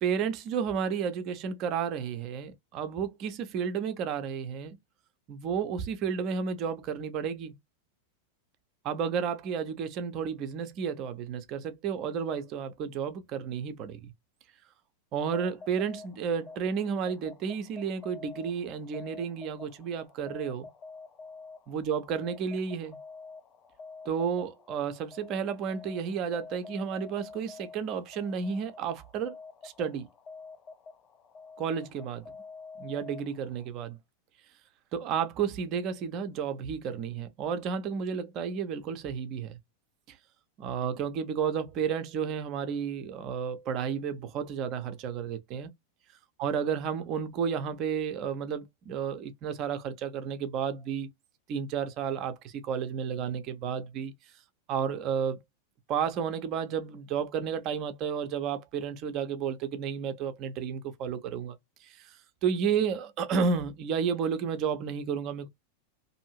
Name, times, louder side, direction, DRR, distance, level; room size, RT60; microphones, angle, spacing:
voice 1, 0.0-4.8 5.3-7.5 8.8-14.1 15.1-20.7 21.7-23.0 24.0-29.4 29.6-30.1 31.6-32.3 32.8-34.0 34.9-39.6 40.1-40.2 40.6-45.7 46.4-51.1 51.5-54.1 54.7-55.4 55.9-61.6 61.8-62.2 62.4-65.5, right 7 dB, 35° right, 0.6 m, -32 dB
sound 1, 15.2-33.7, left 4 dB, 25° left, 0.5 m, -48 dB
2.7 x 2.6 x 2.9 m
figure-of-eight pair, 90°, 0 cm